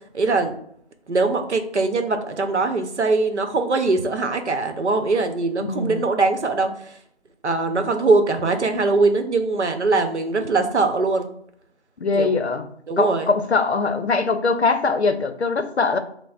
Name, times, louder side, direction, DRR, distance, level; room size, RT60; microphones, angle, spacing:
voice 1, 0.1-0.5 1.1-6.7 7.4-11.3 12.1-12.3 12.9-13.3, right 3 dB, 85° right, 6 dB, 0.8 m, -21 dB
voice 2, 5.6-6.0 7.7-7.9 12.0-12.7 13.0-16.0, left 4 dB, 70° left, 9 dB, 0.6 m, -22 dB
5.8 x 2.0 x 2.4 m, 0.67 s
figure-of-eight pair, 175°, 34 cm